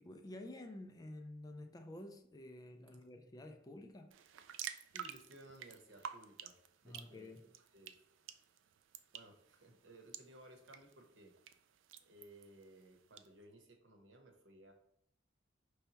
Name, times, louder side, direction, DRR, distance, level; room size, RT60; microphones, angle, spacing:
voice 1, 0.0-4.1 6.8-7.5, left 1 dB, 20° left, 0.3 m, -51 dB
sound 1, 4.1-13.3, right 9 dB, 85° right, 0.4 m, -52 dB
voice 2, 4.9-6.6 6.8-7.3 7.7-7.9 9.1-11.3 12.0-14.7, right 1 dB, 65° right, 0.9 m, -59 dB
5.4 x 3.4 x 2.9 m
head